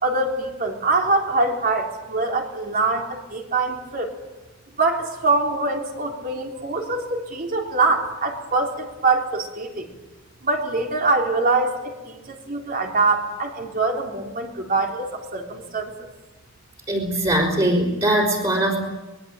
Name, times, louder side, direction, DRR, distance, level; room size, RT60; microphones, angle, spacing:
voice 1, 0.0-4.1 4.8-9.9 10.4-15.9, right 3 dB, 45° right, 1 dB, 3.6 m, -24 dB
voice 2, 16.9-18.8, right 1 dB, 30° right, -4 dB, 4.7 m, -21 dB
24.0 x 21.5 x 8.9 m, 1.1 s
head